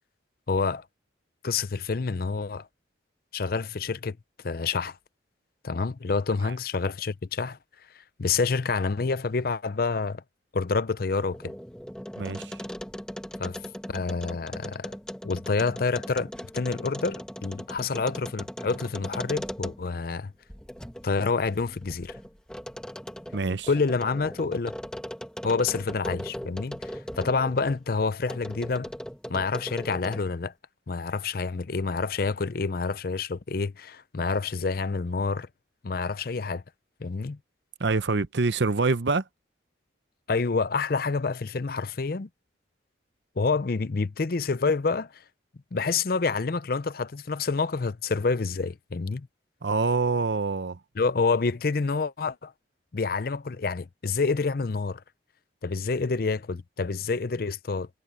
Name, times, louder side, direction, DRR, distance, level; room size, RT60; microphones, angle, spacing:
voice 1, 0.5-0.8 1.4-2.7 3.3-4.2 4.4-5.0 5.6-7.6 8.2-10.2 10.5-11.5 13.4-13.6 13.9-14.9 15.2-20.3 21.0-22.2 23.7-24.7 25.4-28.9 29.3-30.5 30.9-35.5 35.8-36.6 37.0-37.4 40.3-42.3 43.4-45.2 45.7-49.3 51.0-52.5 52.9-55.0 55.6-57.9, left 4 dB, 50° left, 0.5 m, -28 dB
sound 1, 11.1-20.0 20.5-27.8 28.3-30.4, equal, 5° left, 1.3 m, -39 dB
voice 2, 12.2-12.6 23.3-23.7 37.8-39.2 49.6-50.8, right 3 dB, 65° right, 0.8 m, -25 dB
head